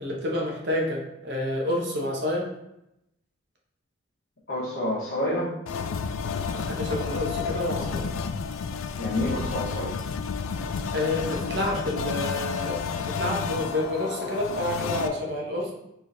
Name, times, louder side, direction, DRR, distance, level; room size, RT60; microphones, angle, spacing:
voice 1, 0.0-2.5 6.5-8.0 10.9-15.7, left 1 dB, 55° right, -1 dB, 0.9 m, -29 dB
voice 2, 4.5-5.5 9.0-9.9, left 1 dB, 65° left, -8 dB, 1.0 m, -28 dB
sound 1, 5.7-15.1, left 5 dB, 85° left, 0.3 m, -31 dB
4.6 x 3.3 x 2.6 m, 0.83 s
head